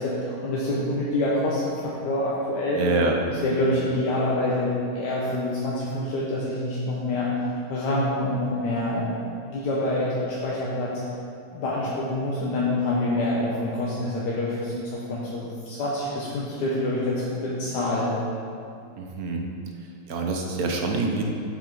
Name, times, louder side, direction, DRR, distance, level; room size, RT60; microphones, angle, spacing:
voice 1, 0.0-2.8 3.3-7.4 7.7-10.9 11.5-18.1, left 1 dB, 60° left, -6 dB, 1.4 m, -26 dB
voice 2, 2.7-3.2 19.0-19.4 20.1-21.2, right 3 dB, 60° right, 1 dB, 1.0 m, -25 dB
7.3 x 7.3 x 3.8 m, 2.5 s
omnidirectional pair, 2.3 m